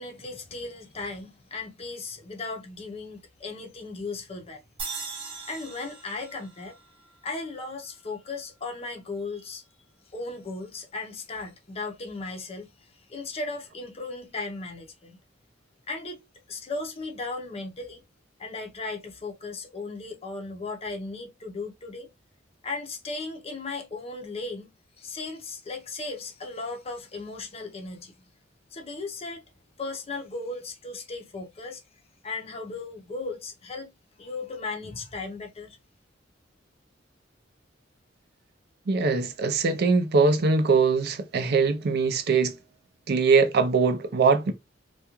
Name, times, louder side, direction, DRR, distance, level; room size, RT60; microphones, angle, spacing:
voice 1, 0.0-4.6 5.5-6.8 7.2-9.6 10.1-15.2 15.9-18.0 18.4-22.1 22.6-28.1 28.7-29.4 29.8-31.8 32.2-33.9 34.2-35.8, left 3 dB, 30° left, 0.6 m, -36 dB
sound 1, 4.8-8.1, right 4 dB, 25° right, 0.8 m, -40 dB
voice 2, 38.9-42.5 43.1-44.5, right 4 dB, 55° right, 0.4 m, -22 dB
2.4 x 2.2 x 2.9 m
head